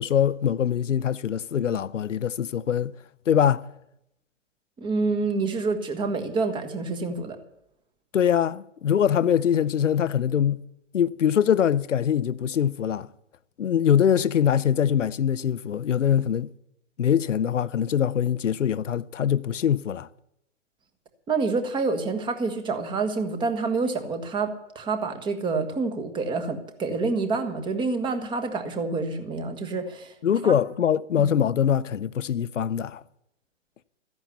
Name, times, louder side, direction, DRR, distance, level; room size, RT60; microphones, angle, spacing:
voice 1, 0.0-2.9 3.3-3.7 8.1-10.6 10.9-13.1 13.6-16.5 17.0-20.1 30.2-33.0, left 9 dB, 85° left, 0.7 m, -23 dB
voice 2, 4.8-7.4 21.3-30.1 30.4-30.5 31.2-31.3, right 4 dB, 15° right, 1.4 m, -27 dB
14.0 x 10.5 x 8.3 m
hypercardioid pair, 135°, 36 cm